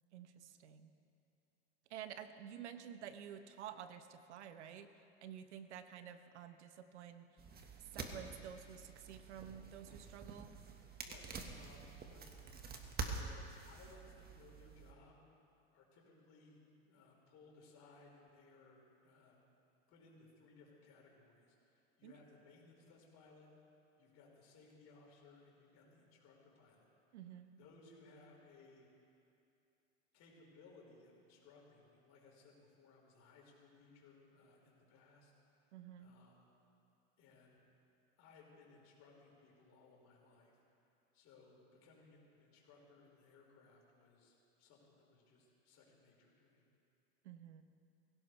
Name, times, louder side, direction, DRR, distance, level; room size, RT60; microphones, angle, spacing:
voice 1, 0.1-0.9 1.9-7.4 7.9-10.5 22.0-22.1 27.1-27.5 35.7-36.1 47.2-47.6, right 9 dB, 85° right, 10 dB, 1.1 m, -51 dB
sound 1, 7.4-14.9, right 4 dB, 30° right, 1.7 m, -48 dB
voice 2, 11.0-12.2 12.9-15.2 15.7-19.4 19.9-23.5 24.0-26.9 27.6-28.9 30.1-35.3 36.0-36.5 37.2-37.6 38.2-40.6 41.1-46.6, left 3 dB, 50° left, -2 dB, 4.8 m, -63 dB
22.5 x 16.5 x 3.4 m, 2.7 s
hypercardioid pair, 105°, 34 cm